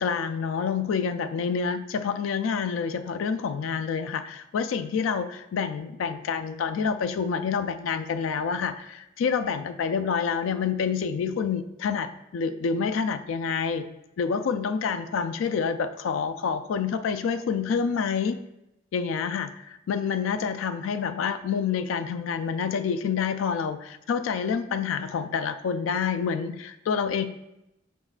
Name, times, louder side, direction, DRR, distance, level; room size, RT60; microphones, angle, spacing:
voice 1, 0.0-13.9 14.2-18.4 18.9-27.2, left 6 dB, 90° left, 10 dB, 0.3 m, -28 dB
5.3 x 3.6 x 2.4 m, 0.86 s
head